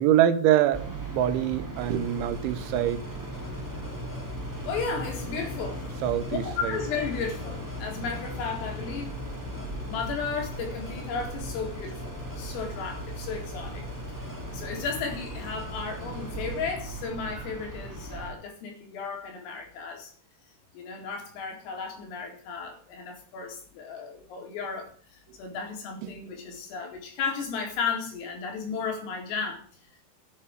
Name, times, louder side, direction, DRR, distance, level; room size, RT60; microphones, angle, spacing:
voice 1, 0.0-3.0 6.0-6.8 26.0-26.1, right 11 dB, 75° right, 3.3 m, -24 dB
sound 1, 0.7-18.3, right 3 dB, 20° right, 0.5 m, -38 dB
sound 2, 1.7-16.6, left 1 dB, 10° left, 2.6 m, -48 dB
sound 3, 3.3-18.4, left 5 dB, 70° left, 5.7 m, -43 dB
voice 2, 4.7-5.8 6.4-9.1 9.7-14.3 14.5-20.1 20.7-29.6, left 5 dB, 90° left, 6.6 m, -34 dB
11.0 x 9.1 x 9.5 m
omnidirectional pair, 5.8 m